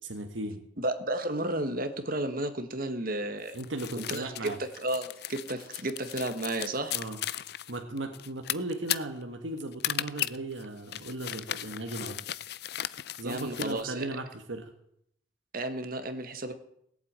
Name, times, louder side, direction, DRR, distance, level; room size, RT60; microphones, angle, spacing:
voice 1, 0.1-0.6 3.5-4.6 6.9-7.2 7.7-12.2 13.2-14.7, right 2 dB, 80° right, 4 dB, 1.5 m, -36 dB
voice 2, 0.8-3.6 4.1-4.3 4.6-6.9 13.2-14.1 15.5-16.5, right 1 dB, 50° right, 8 dB, 1.5 m, -32 dB
sound 1, 3.5-13.8, left 12 dB, 55° left, 0.5 m, -36 dB
18.0 x 8.1 x 8.8 m, 0.73 s
head